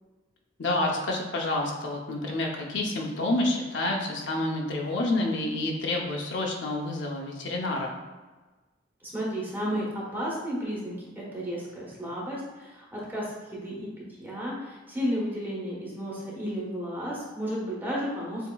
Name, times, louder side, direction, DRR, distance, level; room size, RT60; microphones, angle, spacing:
voice 1, 0.6-7.9, left 2 dB, 70° left, 0 dB, 0.7 m, -28 dB
voice 2, 9.0-18.5, equal, 10° right, -6 dB, 1.2 m, -33 dB
6.9 x 2.9 x 2.3 m, 1.2 s
head